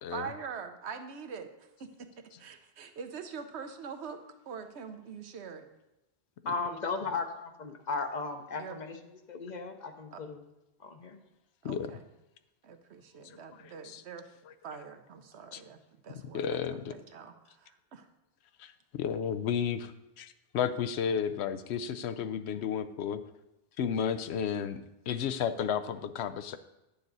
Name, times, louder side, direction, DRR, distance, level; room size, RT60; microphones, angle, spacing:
voice 1, 0.1-5.7 8.6-8.8 10.1-10.2 11.6-12.1 12.6-14.3 14.6-18.1, right 6 dB, 85° right, 7 dB, 1.1 m, -44 dB
voice 2, 6.4-10.5 10.8-11.2, left 4 dB, 45° left, 6 dB, 0.8 m, -36 dB
voice 3, 13.6-14.0 15.5-15.6 16.3-16.9 18.6-19.9 20.2-23.2 23.8-24.8 25.1-26.6, left 8 dB, 80° left, 11 dB, 0.8 m, -32 dB
9.6 x 6.9 x 3.9 m, 0.95 s
omnidirectional pair, 1.1 m